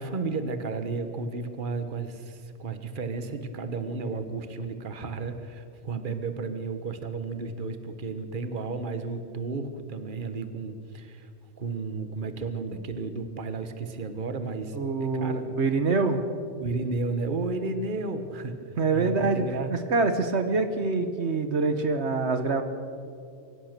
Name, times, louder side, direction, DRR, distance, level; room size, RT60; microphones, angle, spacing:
voice 1, 0.0-11.3 11.6-15.5 16.6-19.7, right 3 dB, 45° right, 9 dB, 1.5 m, -33 dB
voice 2, 14.7-16.2 18.8-19.4 19.9-22.6, right 4 dB, 70° right, 8 dB, 1.6 m, -25 dB
24.5 x 17.0 x 6.7 m, 2.4 s
omnidirectional pair, 1.2 m